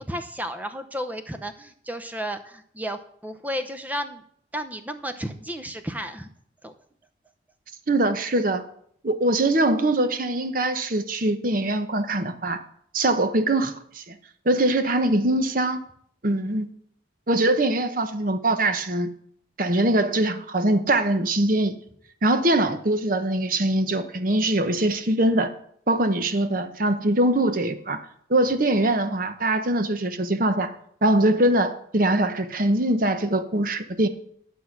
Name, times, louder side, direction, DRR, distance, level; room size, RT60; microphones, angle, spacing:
voice 1, 0.0-4.2 4.5-6.3 6.6-6.7, equal, 10° right, 8 dB, 0.7 m, -33 dB
voice 2, 7.9-8.6 9.0-12.6 12.9-14.2 14.5-15.8 16.2-16.7 17.3-19.1 19.6-21.8 22.2-25.5 25.9-28.0 28.3-30.7 31.0-34.1, right 1 dB, 45° right, 10 dB, 0.8 m, -22 dB
11.5 x 6.3 x 5.8 m, 0.65 s
head